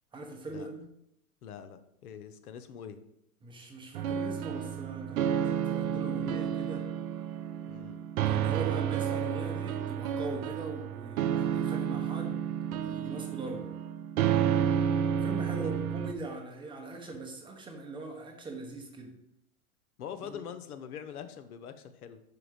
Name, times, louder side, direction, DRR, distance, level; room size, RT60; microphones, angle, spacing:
voice 1, 0.1-0.8 3.4-6.9 8.2-12.4 12.8-13.7 15.2-19.1 20.2-20.4, right 2 dB, 10° right, 0.9 m, -41 dB
voice 2, 1.4-3.0 7.7-8.0 15.6-15.9 20.0-22.2, left 8 dB, 85° left, 0.8 m, -44 dB
sound 1, 3.9-16.1, right 9 dB, 75° right, 0.7 m, -31 dB
5.2 x 4.8 x 5.0 m
hypercardioid pair, 130°, 43 cm